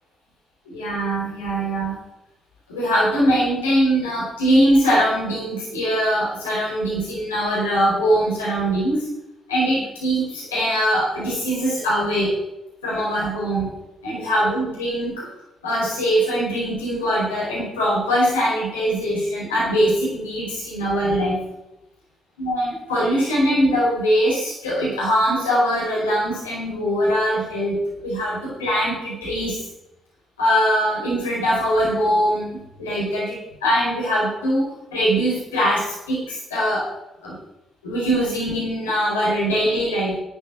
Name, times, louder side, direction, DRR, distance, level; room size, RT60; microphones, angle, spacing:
voice 1, 0.6-2.0 2.7-9.1 9.5-12.3 12.8-13.7 14.0-15.3 15.6-21.4 22.4-29.6 30.4-36.9 37.2-37.4 37.8-40.1, equal, 85° left, -6 dB, 4.5 m, -22 dB
12.5 x 9.0 x 6.4 m, 0.89 s
hypercardioid pair, 40°, 0 cm